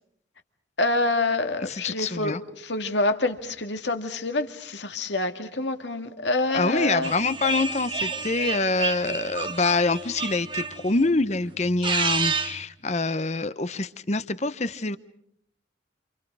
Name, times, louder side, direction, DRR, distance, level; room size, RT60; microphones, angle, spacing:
voice 1, 0.8-7.1, left 2 dB, 75° left, 6 dB, 2.2 m, -27 dB
voice 2, 1.6-2.4 6.5-15.0, left 3 dB, 40° left, 13 dB, 0.9 m, -25 dB
sound 1, 7.0-11.1 11.7-12.6, right 5 dB, 25° right, 1.1 m, -30 dB
28.5 x 28.5 x 4.8 m, 0.68 s
head